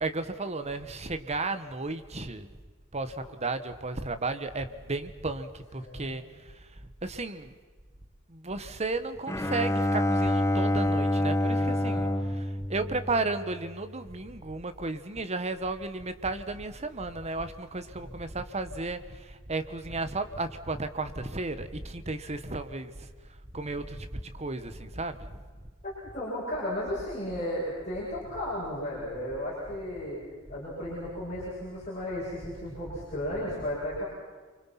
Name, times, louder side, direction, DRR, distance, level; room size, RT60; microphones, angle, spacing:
voice 1, 0.0-2.5 2.9-6.2 7.0-7.5 8.3-23.1 23.5-25.4, right 3 dB, 35° right, 10 dB, 1.4 m, -34 dB
voice 2, 5.8-6.2 11.5-12.4 18.0-18.1 25.8-30.2 30.5-34.1, left 1 dB, 35° left, -7 dB, 7.6 m, -35 dB
Bowed string instrument, 9.3-13.6, left 1 dB, 15° left, 1.1 m, -27 dB
29.5 x 24.5 x 6.0 m, 1.4 s
head